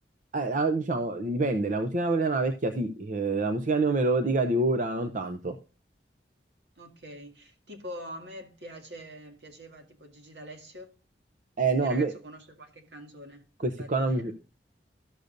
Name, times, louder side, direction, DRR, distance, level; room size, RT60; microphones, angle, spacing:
voice 1, 0.3-5.6 11.6-12.1 13.6-14.3, right 3 dB, 45° right, 0.7 m, -26 dB
voice 2, 6.8-10.9 11.7-13.4 13.8-14.3, equal, 75° right, 2.0 m, -44 dB
13.0 x 6.7 x 2.5 m
head